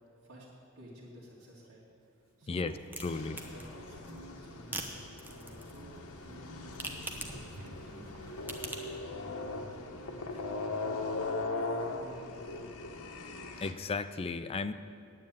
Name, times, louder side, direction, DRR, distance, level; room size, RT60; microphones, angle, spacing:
voice 1, 0.8-1.8 2.4-2.8 3.3-5.0 5.3-8.1 8.6-11.0 11.6-12.8, right 1 dB, 65° right, -8 dB, 2.3 m, -52 dB
sound 1, 2.0-8.6, right 1 dB, 90° right, 1.1 m, -57 dB
sound 2, 2.6-9.0, right 1 dB, 10° right, 0.9 m, -45 dB
sound 3, 3.0-13.7, left 3 dB, 85° left, 1.0 m, -40 dB
voice 2, 3.0-3.4 13.6-14.7, left 4 dB, 25° left, 11 dB, 0.4 m, -34 dB
9.4 x 8.6 x 9.0 m, 2.5 s
head